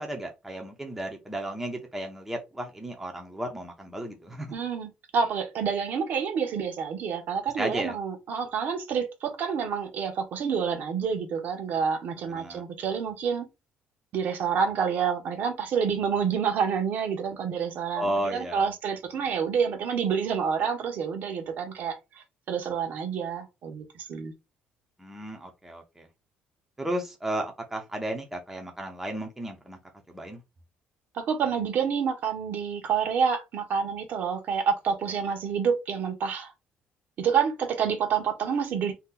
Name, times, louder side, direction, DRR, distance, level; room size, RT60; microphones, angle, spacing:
voice 1, 0.0-4.5 7.6-7.9 12.3-12.6 17.9-18.7 25.0-26.0 26.8-29.8 30.1-30.4, right 1 dB, 10° right, 0.7 m, -34 dB
voice 2, 4.5-13.5 14.1-24.3 31.1-36.5 37.2-38.9, right 6 dB, 60° right, 0.9 m, -28 dB
2.8 x 2.2 x 3.8 m
cardioid pair, 130°, 3 cm